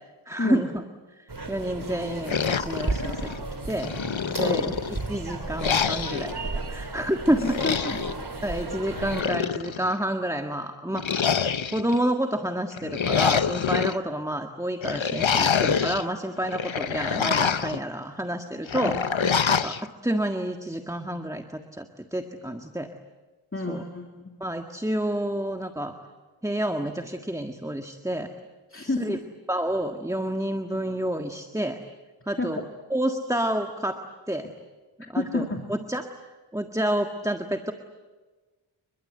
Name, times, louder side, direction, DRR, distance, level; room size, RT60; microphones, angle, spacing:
voice 1, 0.2-0.8 1.2-3.9 4.3-6.3 6.7-7.6 8.4-11.2 11.7-19.0 19.5-22.9 23.7-23.8 24.4-25.9 26.4-28.3 28.8-29.2 29.5-31.8 32.3-32.6 32.9-34.5 35.1-36.1 36.5-37.7, right 1 dB, 5° right, 5 dB, 1.7 m, -29 dB
sound 1, 1.3-9.2, right 3 dB, 50° right, 3.8 m, -34 dB
sound 2, 2.3-3.4 3.8-5.0 5.6-6.3 7.4-8.2 8.9-9.9 11.0-12.0 12.7-14.0 14.8-16.0 16.4-17.8 18.7-19.8, left 6 dB, 70° left, 1.0 m, -26 dB
voice 2, 4.4-4.7 7.4-8.1 19.2-19.3 23.5-24.3 28.7-29.2 32.4-32.6 35.1-35.6, left 2 dB, 25° left, 3 dB, 2.9 m, -30 dB
30.0 x 23.0 x 8.1 m, 1.3 s
wide cardioid pair, 65°, 48 cm